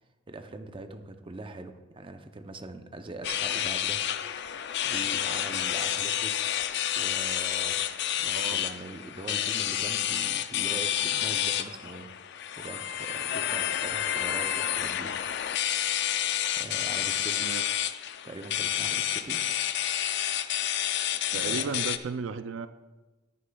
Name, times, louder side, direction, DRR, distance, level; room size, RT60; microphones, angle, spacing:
voice 1, 0.3-4.5 4.8-6.3 7.0-7.8 8.1-12.1 12.6-15.1 15.5-16.2 16.6-17.5 18.2-19.4 21.3-21.8, right 2 dB, 25° right, 7 dB, 0.6 m, -42 dB
sound 1, 3.2-22.0, left 11 dB, 65° left, 0.4 m, -29 dB
voice 2, 21.3-22.7, right 5 dB, 75° right, 11 dB, 0.4 m, -34 dB
14.5 x 9.9 x 2.3 m, 1.2 s
head